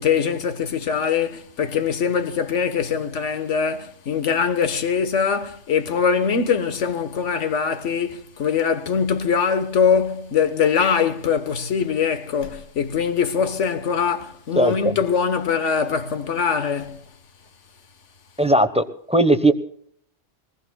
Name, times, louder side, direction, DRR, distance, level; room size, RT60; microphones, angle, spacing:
voice 1, 0.0-17.0, left 6 dB, 85° left, 1.5 m, -22 dB
voice 2, 14.6-15.0 18.4-19.5, right 1 dB, 5° right, 0.8 m, -18 dB
23.0 x 20.0 x 2.3 m
omnidirectional pair, 1.2 m